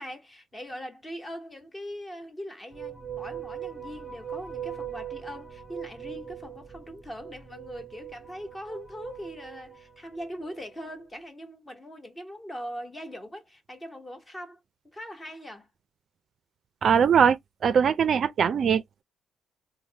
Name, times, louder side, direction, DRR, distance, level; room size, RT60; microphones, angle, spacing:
voice 1, 0.0-14.6 14.9-15.7, equal, 20° left, 1.1 m, -41 dB
sound 1, 2.7-10.7, right 9 dB, 25° right, 0.7 m, -41 dB
voice 2, 16.8-17.4 17.6-19.0, right 7 dB, 55° right, 0.4 m, -21 dB
3.3 x 2.1 x 2.8 m
cardioid pair, 90°, 0 cm